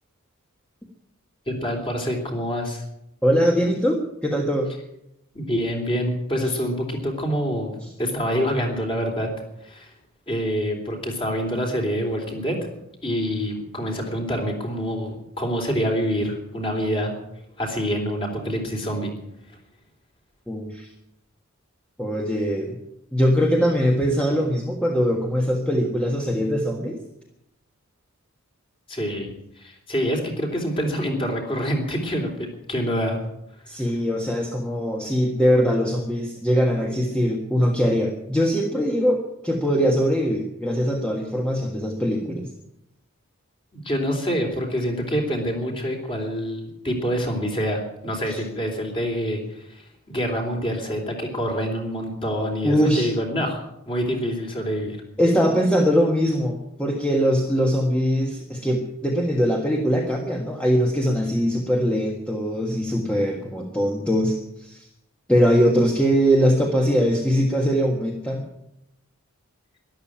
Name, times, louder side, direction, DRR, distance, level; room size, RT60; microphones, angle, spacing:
voice 1, 1.5-2.8 5.3-7.7 8.0-9.3 9.6-9.9 10.3-12.6 13.0-17.1 17.6-19.1 28.9-29.3 29.6-33.2 43.7-55.0, equal, 25° left, 2 dB, 3.5 m, -26 dB
voice 2, 3.2-4.7 6.4-6.6 20.5-20.9 22.0-22.8 23.1-27.0 33.7-42.5 48.3-48.4 52.6-53.1 55.2-64.9 65.3-68.4, equal, 5° left, 0 dB, 1.5 m, -22 dB
13.0 x 12.0 x 8.8 m, 0.81 s
head